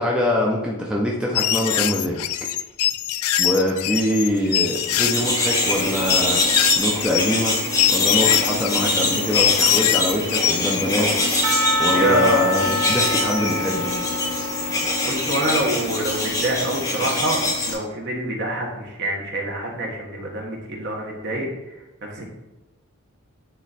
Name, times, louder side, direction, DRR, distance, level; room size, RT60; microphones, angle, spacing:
voice 1, 0.0-2.2 3.4-6.4 6.8-7.5 7.9-11.1 11.8-13.9, equal, 5° right, -3 dB, 0.7 m, -24 dB
sound 1, 1.4-10.9, left 12 dB, 90° left, 0.4 m, -23 dB
sound 2, 4.5-17.7, left 2 dB, 15° left, 1.2 m, -24 dB
Percussion / Church bell, 11.4-15.8, left 1 dB, 90° right, 1.1 m, -26 dB
voice 2, 11.9-12.4 15.0-21.5 22.1-22.3, right 1 dB, 50° right, -1 dB, 1.5 m, -25 dB
9.2 x 3.1 x 4.2 m, 1.0 s
head